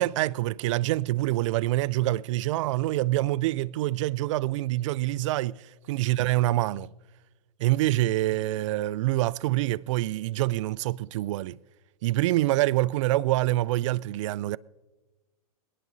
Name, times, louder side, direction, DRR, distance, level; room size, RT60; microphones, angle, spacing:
voice 1, 0.0-6.9 7.6-11.6 12.0-14.6, right 16 dB, 55° right, 0.4 m, -26 dB
21.5 x 18.0 x 2.7 m
hypercardioid pair, 120°, 19 cm